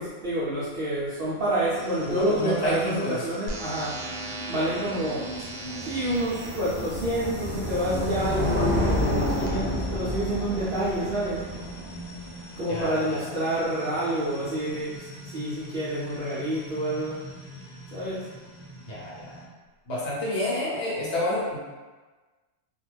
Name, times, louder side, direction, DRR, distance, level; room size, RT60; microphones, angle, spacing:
voice 1, 0.0-4.0 4.5-5.3 5.9-11.4 12.6-15.1 15.3-17.2 17.9-18.2, right 1 dB, 55° right, -10 dB, 0.7 m, -28 dB
sound 1, 1.7-19.4, right 1 dB, 35° left, 0.6 m, -42 dB
voice 2, 2.0-3.3 12.7-13.3 18.9-19.4 19.9-21.6, left 1 dB, 65° left, -6 dB, 1.1 m, -29 dB
sound 2, 3.5-9.5, right 2 dB, 80° right, 0.9 m, -40 dB
sound 3, 5.2-12.3, left 1 dB, 15° right, 0.4 m, -29 dB
2.4 x 2.3 x 3.2 m, 1.3 s
omnidirectional pair, 1.3 m